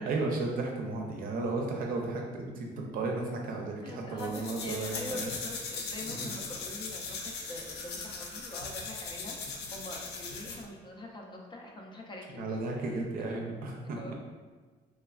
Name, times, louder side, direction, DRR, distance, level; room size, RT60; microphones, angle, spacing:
voice 1, 0.1-5.3 6.1-6.3 12.3-14.0, right 3 dB, 60° right, 1 dB, 0.5 m, -34 dB
voice 2, 3.8-12.6 13.2-13.4 13.8-14.1, left 1 dB, 30° left, 0 dB, 0.4 m, -44 dB
sound 1, 4.2-10.7, left 4 dB, 80° left, 0.5 m, -39 dB
3.2 x 2.2 x 2.3 m, 1.4 s
cardioid pair, 110°, 17 cm